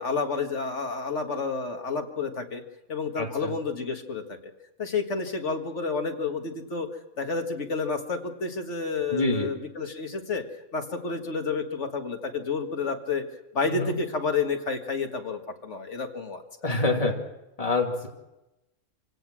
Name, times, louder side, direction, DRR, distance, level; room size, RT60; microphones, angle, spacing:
voice 1, 0.0-2.6 2.9-4.4 4.8-6.9 7.2-10.4 10.7-13.2 13.5-16.4, left 4 dB, 65° left, 5 dB, 2.0 m, -30 dB
voice 2, 3.2-3.5 9.1-9.5 13.7-14.0 16.6-17.1 17.6-18.1, left 2 dB, 30° left, 0 dB, 2.8 m, -26 dB
26.5 x 17.0 x 6.2 m, 0.95 s
omnidirectional pair, 1.3 m